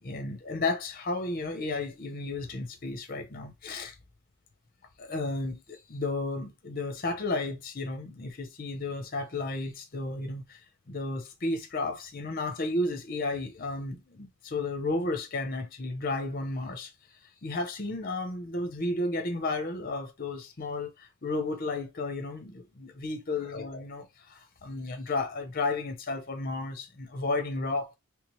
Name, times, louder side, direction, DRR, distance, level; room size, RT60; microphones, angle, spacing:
voice 1, 0.0-4.0 5.0-16.9 17.4-27.9, left 2 dB, 40° left, 0.8 m, -33 dB
3.3 x 3.2 x 3.1 m
head